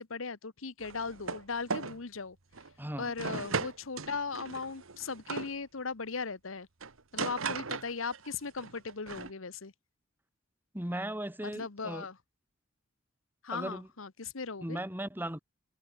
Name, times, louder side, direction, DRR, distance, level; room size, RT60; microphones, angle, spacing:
voice 1, 0.0-2.4 3.0-6.7 7.1-9.7 11.4-12.2 13.4-14.8, left 4 dB, 85° left, 1.2 m, -38 dB
sound 1, 0.8-1.4 1.7-2.0 2.5-2.7 3.2-5.5 6.8-8.3 8.6-9.3, right 4 dB, 85° right, 1.6 m, -37 dB
voice 2, 2.8-3.4 10.7-12.1 13.5-13.9 14.6-15.4, right 1 dB, 10° right, 2.0 m, -37 dB
head